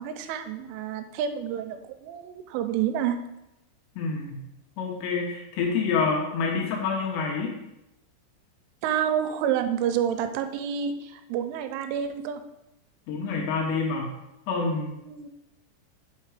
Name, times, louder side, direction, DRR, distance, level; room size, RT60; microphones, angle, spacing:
voice 1, 0.0-3.2 8.8-12.4 15.1-15.3, right 9 dB, 90° right, 8 dB, 3.1 m, -29 dB
voice 2, 4.0-4.4 4.8-7.6 13.1-14.1 14.5-15.0, left 4 dB, 75° left, 0 dB, 2.9 m, -27 dB
5.8 x 5.7 x 4.8 m, 0.89 s
omnidirectional pair, 5.5 m